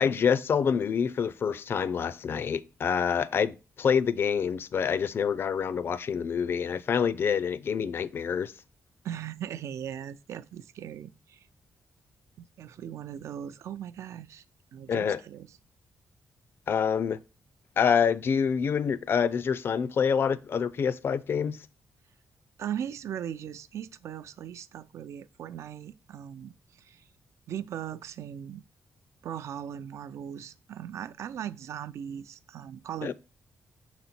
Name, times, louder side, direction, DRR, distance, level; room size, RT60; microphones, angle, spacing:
voice 1, 0.0-8.5 14.9-15.2 16.7-17.2 17.8-21.6 33.0-33.1, left 7 dB, 50° left, 0.4 m, -27 dB
voice 2, 9.0-11.5 12.4-14.4 14.7-15.6 22.6-27.1 27.5-28.6 29.2-33.1, right 9 dB, 75° right, 0.4 m, -39 dB
6.2 x 4.0 x 4.3 m
wide cardioid pair, 135°, 5 cm